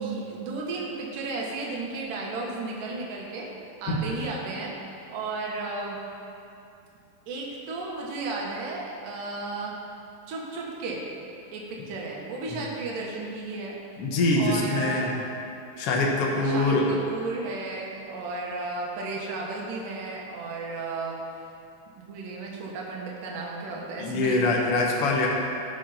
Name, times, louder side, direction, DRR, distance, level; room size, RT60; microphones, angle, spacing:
voice 1, 0.0-3.5 3.8-6.1 7.3-9.8 10.3-11.0 11.5-13.8 14.4-15.1 16.3-21.2 22.0-24.5, right 3 dB, 65° right, -2 dB, 2.9 m, -34 dB
voice 2, 14.0-15.1 15.8-17.0 24.0-25.3, left 2 dB, 60° left, -1 dB, 1.6 m, -24 dB
18.0 x 6.3 x 4.3 m, 2.7 s
omnidirectional pair, 4.4 m